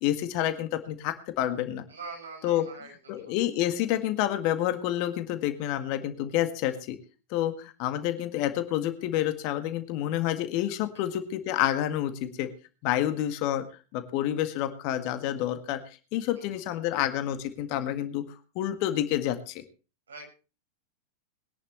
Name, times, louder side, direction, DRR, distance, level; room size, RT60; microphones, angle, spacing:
voice 1, 0.0-1.9 2.4-2.7 3.1-7.0 7.3-12.5 12.8-13.7 13.9-15.8 16.1-18.2 18.6-19.6, left 12 dB, 45° left, 9 dB, 1.8 m, -28 dB
voice 2, 1.9-3.4 10.9-11.0 16.3-16.4 20.1-20.2, right 4 dB, 70° right, 2 dB, 6.4 m, -43 dB
21.5 x 11.0 x 3.2 m, 0.33 s
figure-of-eight pair, 90°, 0 cm